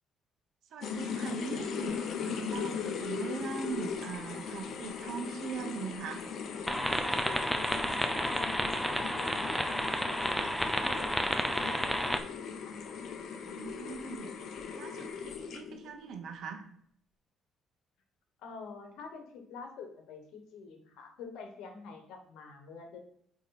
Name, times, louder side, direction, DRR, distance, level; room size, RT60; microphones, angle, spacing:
voice 1, 0.7-6.2 13.4-14.3 14.7-16.7, right 5 dB, 65° right, 6 dB, 0.9 m, -41 dB
sound 1, 0.8-15.9, left 6 dB, 60° left, 0.7 m, -39 dB
sound 2, 6.7-12.2, equal, ahead, 0.5 m, -31 dB
voice 2, 8.1-9.7 10.0-10.4 10.8-12.1 18.4-23.0, left 5 dB, 85° left, 4 dB, 1.2 m, -47 dB
8.5 x 3.1 x 4.1 m, 0.66 s
cardioid pair, 115°, 0 cm